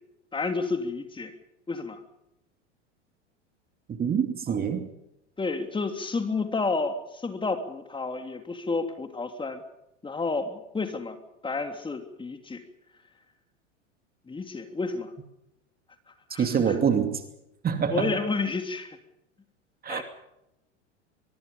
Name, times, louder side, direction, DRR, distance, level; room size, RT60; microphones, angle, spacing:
voice 1, 0.3-1.3 1.7-2.0 5.4-9.6 10.0-11.2 11.4-12.6 14.3-15.1 16.3-16.8 17.9-19.0 19.9-20.0, left 3 dB, 15° left, 7 dB, 3.1 m, -30 dB
voice 2, 3.9-4.9 16.4-17.2 17.6-18.2 19.8-20.0, right 7 dB, 25° right, 7 dB, 2.7 m, -25 dB
24.5 x 23.0 x 5.4 m, 0.84 s
figure-of-eight pair, 90°, 37 cm